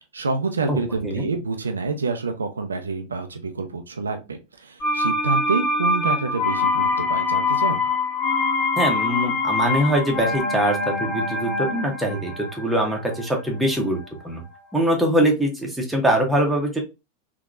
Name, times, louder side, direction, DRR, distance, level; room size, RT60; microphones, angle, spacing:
voice 1, 0.1-7.8, right 4 dB, 75° right, 6 dB, 0.5 m, -27 dB
voice 2, 0.7-1.3 8.8-14.0 14.2-14.4 14.7-16.8, right 1 dB, 5° right, 0 dB, 1.1 m, -23 dB
sound 1, 4.8-14.5 14.8-14.9, left 3 dB, 40° left, 1.6 m, -24 dB
3.6 x 2.9 x 2.4 m, 0.26 s
figure-of-eight pair, 90°, 0 cm